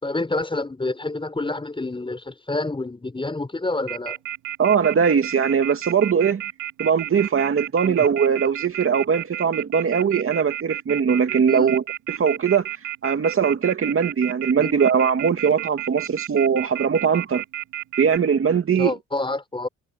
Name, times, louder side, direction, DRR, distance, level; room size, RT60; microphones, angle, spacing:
voice 1, 0.0-4.2 7.8-8.1 11.5-11.7 14.6-14.7 18.7-19.7, left 2 dB, 15° left, 5.4 m, -28 dB
Telephone, 3.9-18.2, right 12 dB, 80° right, 2.6 m, -31 dB
voice 2, 4.6-6.4 6.8-12.7 13.0-17.4 18.0-18.9, right 7 dB, 45° right, 2.5 m, -20 dB
cardioid pair, 90°, 30 cm